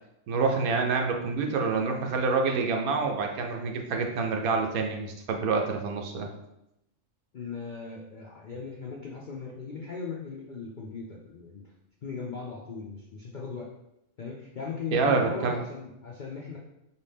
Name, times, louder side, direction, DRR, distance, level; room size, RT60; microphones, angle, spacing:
voice 1, 0.3-6.3 14.9-15.6, right 4 dB, 85° right, 3 dB, 1.2 m, -27 dB
voice 2, 7.3-11.7 12.0-13.7 14.2-16.6, left 5 dB, 65° left, -2 dB, 0.4 m, -38 dB
4.8 x 2.8 x 3.4 m, 0.85 s
omnidirectional pair, 1.5 m